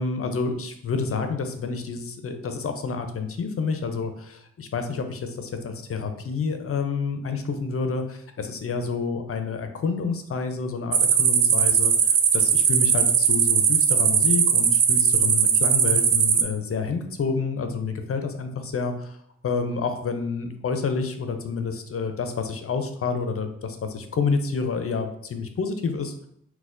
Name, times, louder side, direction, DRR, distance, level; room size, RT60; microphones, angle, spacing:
voice 1, 0.0-19.2 19.4-26.1, left 4 dB, 45° left, 6 dB, 0.5 m, -29 dB
sound 1, 10.9-16.4, right 7 dB, 65° right, 0.5 m, -19 dB
4.1 x 2.2 x 2.5 m, 0.70 s
cardioid pair, 50°, 32 cm